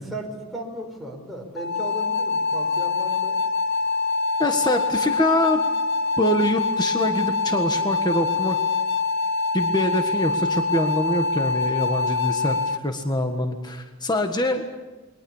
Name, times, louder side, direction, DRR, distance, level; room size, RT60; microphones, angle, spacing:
voice 1, 0.0-3.4, right 1 dB, ahead, 0 dB, 5.1 m, -36 dB
sound 1, 1.6-12.8, left 4 dB, 50° left, 0.9 m, -24 dB
voice 2, 4.4-5.6 6.2-8.6 9.5-14.6, left 1 dB, 20° left, 5 dB, 1.6 m, -24 dB
28.5 x 22.5 x 7.3 m, 1.2 s
head